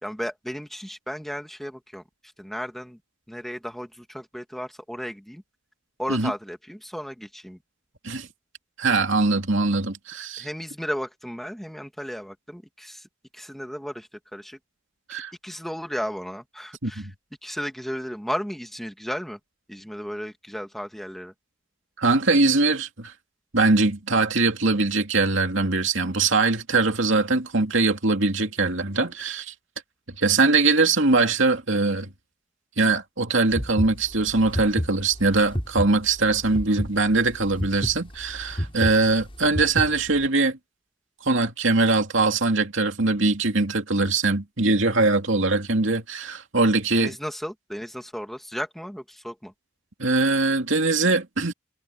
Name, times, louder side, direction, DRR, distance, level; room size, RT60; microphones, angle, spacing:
voice 1, 0.0-2.0 2.4-3.0 3.3-5.4 6.0-7.6 10.4-13.1 13.3-14.6 15.1-17.1 17.4-19.4 19.7-21.3 46.9-49.5, equal, ahead, 2.1 m, -34 dB
voice 2, 8.8-10.5 15.1-15.3 16.8-17.1 22.0-23.1 23.5-29.5 30.2-32.1 32.8-40.6 41.2-47.1 50.0-51.5, right 3 dB, 60° right, 2.7 m, -22 dB
sound 1, 33.5-40.3, equal, 25° left, 6.6 m, -30 dB
head